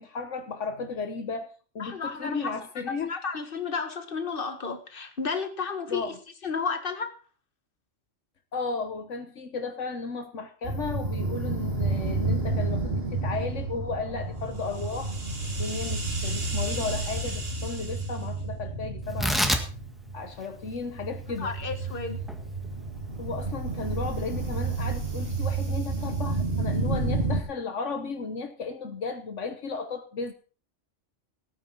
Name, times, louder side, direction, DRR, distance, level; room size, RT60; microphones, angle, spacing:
voice 1, 0.0-3.1 5.9-6.2 8.5-15.1 15.6-19.5 20.1-21.5 23.2-30.3, left 4 dB, 75° left, 1.5 m, -34 dB
voice 2, 1.8-2.8 3.1-6.1 6.4-7.2 21.4-22.2, left 5 dB, 45° left, 1.9 m, -32 dB
sound 1, 10.6-27.4, right 3 dB, 50° right, 3.1 m, -30 dB
Tearing, 19.0-25.8, equal, ahead, 1.7 m, -33 dB
18.0 x 9.4 x 4.6 m
omnidirectional pair, 1.3 m